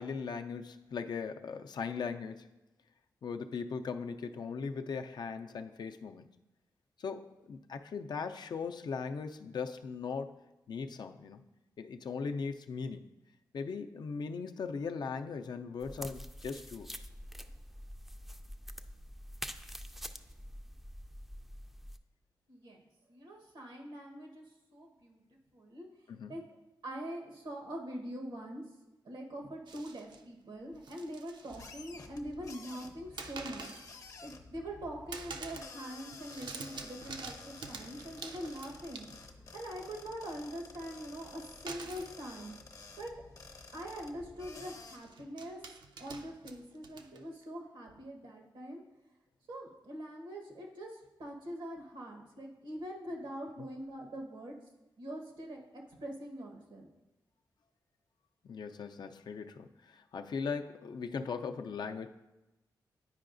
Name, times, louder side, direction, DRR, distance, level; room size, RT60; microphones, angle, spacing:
voice 1, 0.0-2.5 3.2-6.3 7.0-10.4 10.7-11.4 11.8-13.1 13.5-17.0 26.1-26.4 58.4-62.1, left 5 dB, 65° left, 6 dB, 0.4 m, -39 dB
sound 1, 15.8-22.0, equal, ahead, 0.3 m, -46 dB
voice 2, 22.5-22.8 23.1-24.4 24.7-25.2 25.5-25.9 26.3-26.4 26.8-28.6 29.0-33.7 34.2-39.1 39.5-42.5 43.0-43.1 43.7-45.6 46.0-48.8 49.5-54.6 55.0-56.9, equal, 90° right, 1 dB, 1.2 m, -43 dB
sound 2, 29.7-30.2 30.7-31.7 31.9-32.5 33.2-33.9 34.3-34.8 35.1-35.8 36.0-39.4 41.7-42.1 43.1-43.2 43.5-43.7 44.8-47.4, right 4 dB, 75° right, 0.5 m, -47 dB
sound 3, 31.5-45.0, left 3 dB, 50° left, 0.8 m, -52 dB
9.7 x 4.7 x 2.6 m, 0.99 s
cardioid pair, 65°, 8 cm